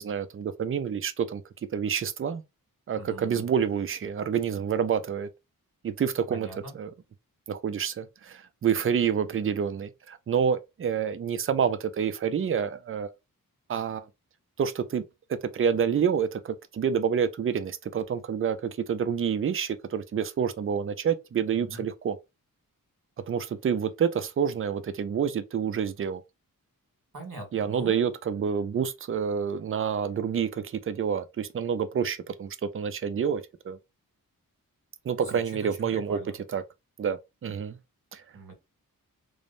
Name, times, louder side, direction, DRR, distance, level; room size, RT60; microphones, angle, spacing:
voice 1, 0.0-1.4 1.7-2.4 2.9-5.3 5.8-6.5 6.7-6.9 7.5-13.1 13.7-14.1 14.6-15.0 15.5-22.2 23.3-26.2 27.5-33.8 35.0-36.2 36.5-36.6 37.0-37.8 38.1-38.2, right 7 dB, 40° right, 0.4 m, -28 dB
voice 2, 2.9-3.5 6.3-6.7 21.6-21.8 27.1-28.1 35.2-36.3 38.3-38.5, right 2 dB, 55° right, 1.7 m, -42 dB
3.2 x 2.0 x 2.5 m
wide cardioid pair, 95°, 36 cm